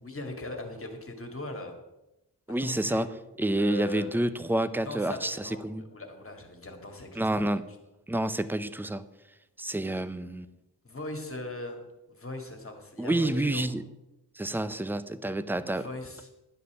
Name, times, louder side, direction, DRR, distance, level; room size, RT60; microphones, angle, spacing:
voice 1, 0.0-1.8 2.6-3.1 3.6-4.1 4.8-7.5 9.9-10.2 10.8-11.8 12.1-13.6 15.7-16.3, left 1 dB, 35° left, 2.0 m, -40 dB
voice 2, 2.5-3.1 3.4-5.8 7.2-7.6 8.1-9.0 9.6-10.5 13.0-13.8 14.4-15.9, right 1 dB, 5° right, 0.5 m, -28 dB
11.5 x 5.5 x 8.1 m
wide cardioid pair, 125°, 40 cm